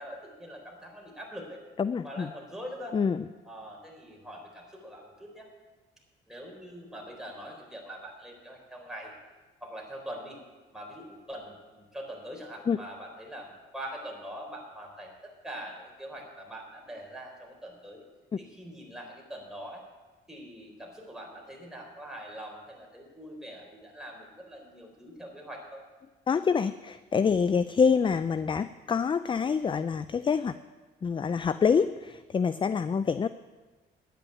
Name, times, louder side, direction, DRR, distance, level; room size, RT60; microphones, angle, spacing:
voice 1, 0.0-1.6 2.0-3.0 3.4-5.5 6.3-9.1 9.6-10.4 10.7-18.0 18.4-19.8 20.3-25.8, equal, 5° right, -1 dB, 4.0 m, -43 dB
voice 2, 1.8-2.3 2.9-3.3 12.7-12.8 26.3-30.6 31.0-33.3, left 6 dB, 25° left, 14 dB, 0.4 m, -26 dB
10.5 x 9.0 x 8.7 m, 1.2 s
cardioid pair, 90°, 20 cm